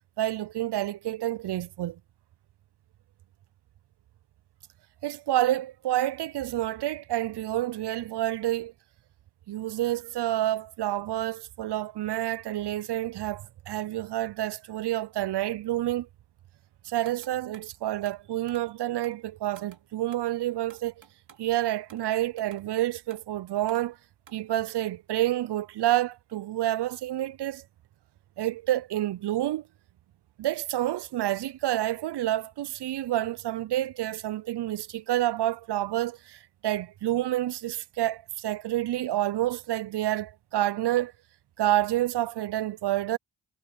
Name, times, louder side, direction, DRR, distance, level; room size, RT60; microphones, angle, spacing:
voice 1, 0.2-2.0 5.0-8.7 9.5-16.1 16.8-20.9 21.4-24.0 24.3-27.6 28.4-29.6 30.4-41.1 41.6-43.2, right 14 dB, 60° right, 0.5 m, -28 dB
sound 1, 17.1-17.7 18.1-18.8 19.0-19.3 19.6-20.3 20.7-21.5 21.9-22.1 22.4-22.7 23.1-23.3 23.7-23.9 24.2-24.5, right 7 dB, 80° right, 2.6 m, -55 dB
cardioid pair, 40°, 45 cm